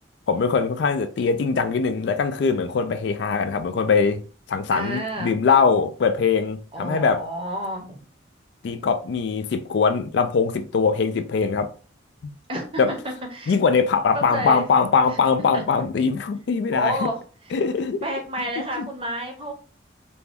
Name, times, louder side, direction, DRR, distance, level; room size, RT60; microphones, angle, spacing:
voice 1, 0.3-4.2 4.5-7.2 8.6-11.7 12.8-12.9 13.5-17.0 17.5-18.0 18.8-18.9, left 5 dB, 65° left, 0.3 m, -21 dB
voice 2, 4.7-5.3 6.7-8.0 12.5-13.0 13.3-13.6 14.1-14.7 15.1-15.2 15.5-15.6 16.7-17.6 18.0-19.5, right 1 dB, 30° right, 0.6 m, -30 dB
2.5 x 2.2 x 3.3 m
head